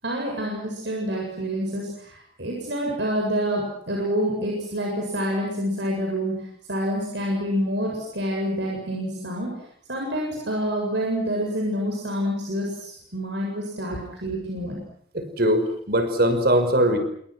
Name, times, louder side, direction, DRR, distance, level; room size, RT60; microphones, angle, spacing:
voice 1, 0.0-9.5 9.9-14.8, equal, 70° right, 0 dB, 7.8 m, -27 dB
voice 2, 15.1-17.0, equal, 55° right, 9 dB, 5.7 m, -21 dB
29.5 x 27.0 x 6.3 m, 0.65 s
head